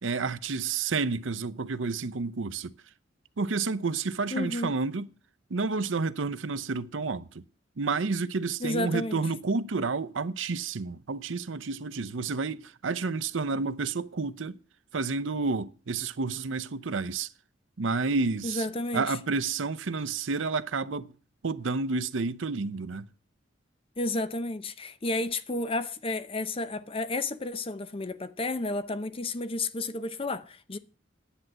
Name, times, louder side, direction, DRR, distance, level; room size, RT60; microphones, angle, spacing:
voice 1, 0.0-2.7 3.4-5.1 5.5-7.4 7.8-14.6 14.9-17.3 17.8-18.7 18.9-21.1 21.4-23.1, right 4 dB, 80° right, 0.7 m, -30 dB
voice 2, 4.3-4.7 8.6-9.2 18.4-19.1 24.0-30.8, left 2 dB, 30° left, 0.7 m, -31 dB
10.5 x 7.8 x 7.4 m
head